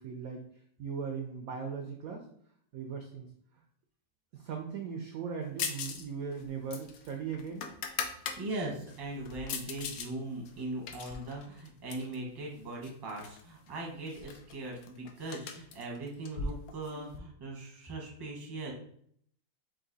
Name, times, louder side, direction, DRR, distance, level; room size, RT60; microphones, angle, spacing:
voice 1, 0.0-2.3 2.7-3.3 4.3-7.7, right 6 dB, 75° right, 4 dB, 0.8 m, -39 dB
sound 1, 5.6-6.1 6.3-8.4 8.9-10.1 10.5-12.2 12.8-13.4 13.7-13.8 14.1-17.2, left 5 dB, 75° left, 0.8 m, -39 dB
voice 2, 8.4-18.7, right 2 dB, 25° right, -1 dB, 0.5 m, -40 dB
4.9 x 2.6 x 3.9 m, 0.66 s
omnidirectional pair, 2.0 m